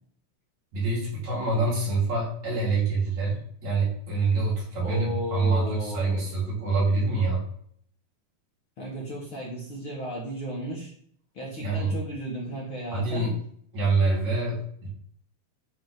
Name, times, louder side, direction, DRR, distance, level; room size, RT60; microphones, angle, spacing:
voice 1, 0.7-7.4 11.6-12.0 12.9-13.4 13.7-14.9, right 3 dB, 60° right, -5 dB, 3.7 m, -26 dB
voice 2, 4.8-6.2 8.8-10.9 11.3-13.3, equal, 50° left, -4 dB, 1.8 m, -34 dB
9.2 x 3.5 x 4.0 m, 0.63 s
omnidirectional pair, 3.7 m